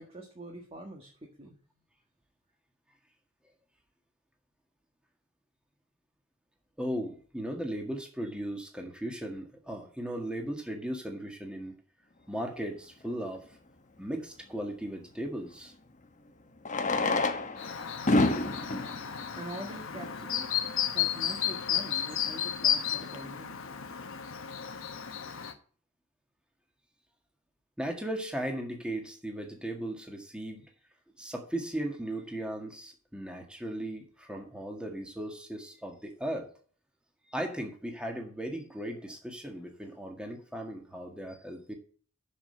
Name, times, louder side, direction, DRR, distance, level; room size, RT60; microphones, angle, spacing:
voice 1, 0.0-1.6 19.4-20.5 20.8-23.5, right 1 dB, 30° right, 2 dB, 1.6 m, -44 dB
voice 2, 6.8-11.7 12.3-13.4 14.0-15.7 27.8-30.6 31.2-36.5 37.3-41.7, right 1 dB, 5° right, 2 dB, 1.8 m, -37 dB
Fireworks, 13.1-13.2 15.4-15.5 16.6-20.3 21.1-21.2 21.4-21.5 21.7-21.8 22.3-22.5, left 2 dB, 35° left, 1.1 m, -29 dB
Chirp tweet, 17.6-25.5, left 9 dB, 70° left, 1.2 m, -33 dB
7.4 x 6.3 x 7.6 m, 0.44 s
head